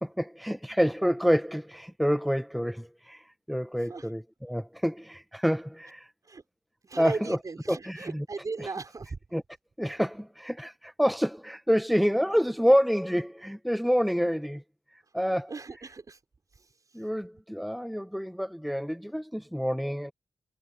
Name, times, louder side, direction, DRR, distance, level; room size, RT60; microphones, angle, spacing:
voice 1, 0.0-6.1 7.0-7.4 7.7-8.2 8.6-8.7 9.3-9.4 9.8-14.6 15.1-15.5 16.9-20.1, equal, ahead, 1.0 m, -27 dB
voice 2, 6.8-9.2 15.5-16.2, right 4 dB, 50° right, 5.9 m, -37 dB
supercardioid pair, 45°, 7 cm